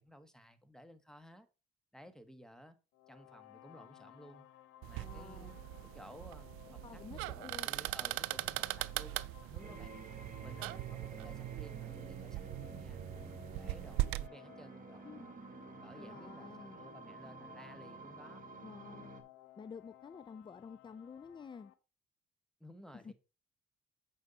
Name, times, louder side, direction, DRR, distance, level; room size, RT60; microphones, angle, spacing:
voice 1, 0.0-1.5 1.9-2.8 3.1-4.5 4.8-5.5 5.9-10.1 10.4-15.1 15.8-18.4 22.6-23.1, equal, 5° left, 1.4 m, -56 dB
sound 1, 2.9-21.7, left 14 dB, 75° left, 1.0 m, -59 dB
sound 2, 4.8-14.3, right 19 dB, 85° right, 0.4 m, -40 dB
voice 2, 5.0-5.6 6.8-7.7 15.0-15.3 15.9-16.8 18.6-19.1 19.6-21.7 22.9-23.1, left 6 dB, 25° left, 0.4 m, -50 dB
sound 3, 9.6-19.2, right 4 dB, 40° right, 1.9 m, -50 dB
8.4 x 5.4 x 4.2 m
supercardioid pair, 75°, 21 cm